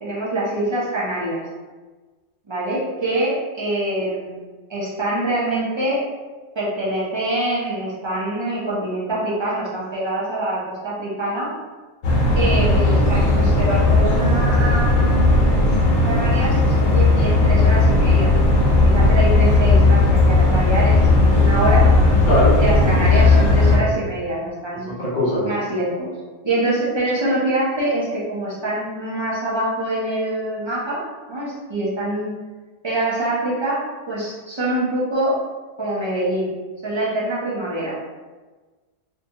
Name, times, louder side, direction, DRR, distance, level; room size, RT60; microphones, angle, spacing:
voice 1, 0.0-1.4 2.5-4.4 4.7-6.0 6.5-11.5 12.3-15.5 16.0-18.3 18.7-21.9 22.6-24.9 25.4-26.1 26.4-31.0 31.3-32.3 32.8-35.4 35.8-36.5 36.8-37.9, right 1 dB, 40° right, -7 dB, 0.4 m, -24 dB
sound 1, 12.0-23.8, left 2 dB, 70° left, 1.0 m, -16 dB
voice 2, 25.0-25.4, equal, 45° left, -7 dB, 0.8 m, -20 dB
2.7 x 2.2 x 2.7 m, 1.3 s
omnidirectional pair, 1.4 m